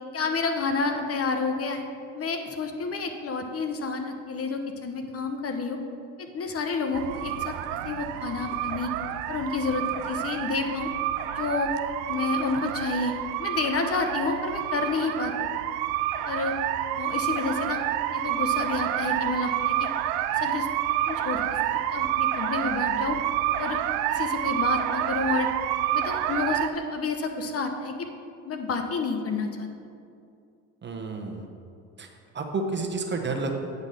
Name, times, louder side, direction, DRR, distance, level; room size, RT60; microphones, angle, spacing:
voice 1, 0.1-1.8 2.1-5.8 6.2-7.5 7.8-8.9 9.3-10.9 11.3-11.7 12.1-15.3 16.2-16.5 17.0-17.8 18.1-19.9 20.3-20.7 21.1-21.4 21.9-23.2 23.6-23.8 24.1-25.5 25.9-28.1 28.4-29.7, left 4 dB, 40° left, 6 dB, 0.9 m, -29 dB
sound 1, 6.9-26.7, right 12 dB, 80° right, 0.5 m, -28 dB
voice 2, 30.8-31.5 32.0-32.1 32.3-33.5, right 3 dB, 30° right, 2 dB, 1.1 m, -30 dB
8.9 x 4.1 x 6.7 m, 2.4 s
supercardioid pair, 80°, 37 cm